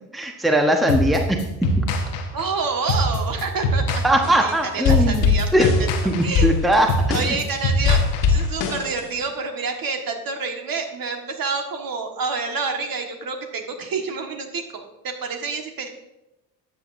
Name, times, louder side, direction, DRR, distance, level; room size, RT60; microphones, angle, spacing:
voice 1, 0.1-1.8 4.0-5.3 5.5-5.7 6.0-7.2, equal, ahead, 4 dB, 1.1 m, -20 dB
sound 1, 0.9-8.7, equal, 75° left, 1.4 m, -24 dB
voice 2, 2.3-4.0 4.4-5.7 6.2-6.5 7.1-8.0 8.3-15.9, right 4 dB, 45° right, 3 dB, 1.7 m, -28 dB
sound 2, 4.2-4.5 4.8-7.5 7.8-9.2, left 6 dB, 55° left, 1.8 m, -22 dB
13.0 x 8.2 x 2.6 m, 0.93 s
hypercardioid pair, 65°, 50 cm